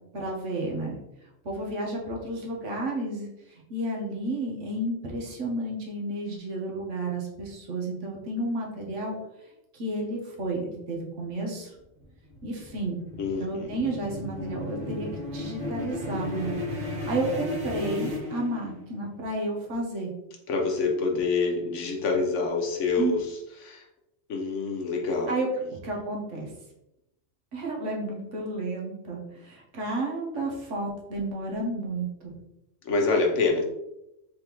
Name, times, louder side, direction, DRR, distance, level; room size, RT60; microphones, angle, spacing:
voice 1, 0.1-0.9 1.4-9.2 9.7-11.7 12.4-13.0 13.4-16.5 17.0-20.1 23.0-23.1 25.3-26.5 27.5-32.3, right 2 dB, 70° right, -1 dB, 1.3 m, -31 dB
sound 1, 11.7-19.0, left 2 dB, 85° right, 1.9 m, -35 dB
voice 2, 13.2-13.7 20.5-23.2 23.6-23.9 24.3-25.4 32.8-33.6, left 4 dB, 70° left, 1 dB, 1.1 m, -26 dB
4.1 x 3.5 x 3.0 m, 0.88 s
omnidirectional pair, 1.3 m